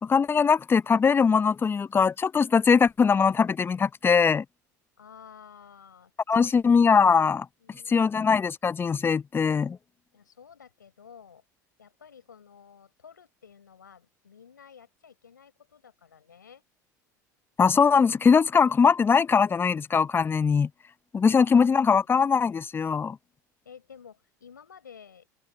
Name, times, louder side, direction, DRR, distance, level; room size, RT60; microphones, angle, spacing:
voice 1, 0.0-4.4 6.3-9.8 17.6-20.7 21.1-23.2, left 6 dB, 20° left, 0.7 m, -21 dB
voice 2, 5.0-6.1 6.4-6.6 7.6-8.2 10.1-11.4 11.8-16.6 23.6-25.3, left 7 dB, 85° left, 4.9 m, -51 dB
hypercardioid pair, 75°, 10 cm